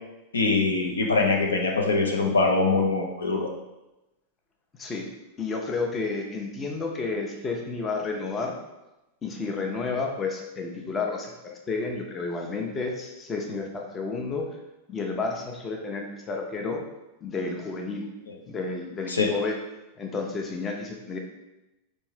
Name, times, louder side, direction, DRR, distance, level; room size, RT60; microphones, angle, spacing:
voice 1, 0.3-3.5 18.3-18.4 19.1-19.3, left 3 dB, 75° left, 1 dB, 0.6 m, -23 dB
voice 2, 5.4-8.5 9.2-14.5 14.9-16.8 17.2-18.1 18.5-19.6 20.0-21.2, left 4 dB, 20° left, 1 dB, 0.6 m, -31 dB
5.3 x 2.6 x 3.3 m, 0.98 s
figure-of-eight pair, 90°, 0 cm